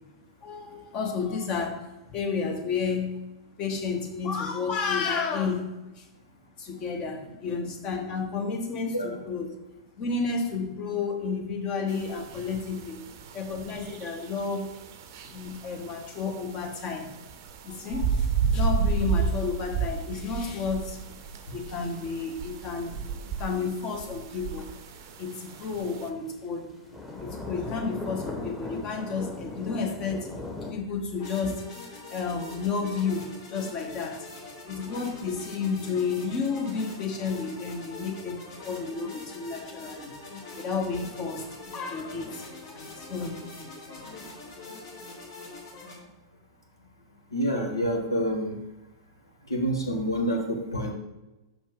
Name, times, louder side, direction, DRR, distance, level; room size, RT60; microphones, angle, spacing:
voice 1, 0.4-3.2 3.6-5.7 6.0-6.1 6.6-9.5 10.0-13.0 13.3-14.7 15.2-17.1 17.6-21.0 21.5-24.7 25.2-26.7 27.2-30.3 30.7-31.6 32.1-34.2 34.7-40.1 40.5-41.4 41.7-43.4, left 5 dB, 30° left, 2 dB, 1.3 m, -31 dB
sound 1, 11.9-26.1, right 5 dB, 45° right, 0.6 m, -32 dB
sound 2, 18.8-30.7, left 2 dB, 5° left, 1.4 m, -40 dB
sound 3, 31.2-45.9, left 3 dB, 50° left, 2.4 m, -43 dB
voice 2, 47.3-48.6 49.5-50.9, equal, 75° left, 1 dB, 1.4 m, -27 dB
6.1 x 5.2 x 5.1 m, 1.0 s
figure-of-eight pair, 100°, 2 cm